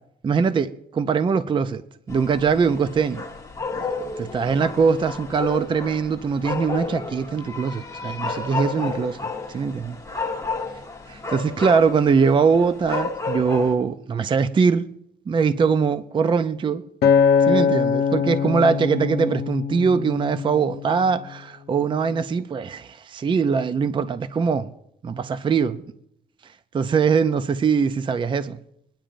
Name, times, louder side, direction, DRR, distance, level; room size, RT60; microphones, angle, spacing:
voice 1, 0.2-1.8 2.1-3.2 3.7-3.8 4.2-9.2 9.5-10.0 11.1-14.9 15.3-16.8 17.4-24.7 25.0-25.8 26.7-28.6, right 5 dB, 30° right, 0.4 m, -22 dB
sound 1, 2.1-13.8, left 3 dB, 20° left, 1.1 m, -32 dB
Acoustic guitar, 17.0-21.4 22.0-22.2, left 6 dB, 80° left, 0.9 m, -22 dB
23.5 x 10.0 x 2.5 m
wide cardioid pair, 165°, 17 cm